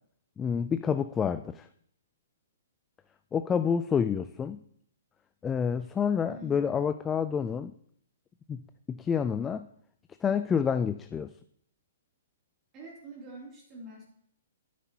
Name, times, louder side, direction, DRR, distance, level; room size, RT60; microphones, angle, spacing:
voice 1, 0.4-1.7 3.3-4.6 5.4-7.7 8.5-8.6 8.9-9.7 10.2-11.3, left 7 dB, 15° left, 11 dB, 0.3 m, -28 dB
voice 2, 6.3-6.6 12.7-14.0, right 1 dB, 30° right, -3 dB, 2.7 m, -45 dB
9.4 x 9.3 x 2.8 m, 0.67 s
hypercardioid pair, 125°, 0 cm